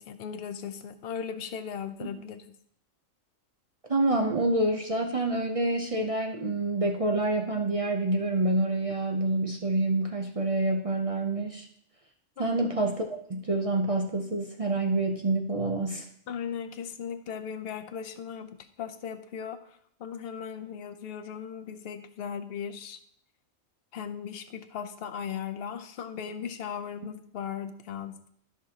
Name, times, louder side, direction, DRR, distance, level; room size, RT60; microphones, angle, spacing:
voice 1, 0.0-2.4 12.4-12.6 16.3-19.6 20.0-23.0 23.9-28.3, left 7 dB, 55° left, 9 dB, 0.8 m, -37 dB
voice 2, 3.9-11.7 12.4-16.1, right 2 dB, 40° right, 2 dB, 0.5 m, -27 dB
13.5 x 6.0 x 2.9 m, 0.68 s
omnidirectional pair, 1.4 m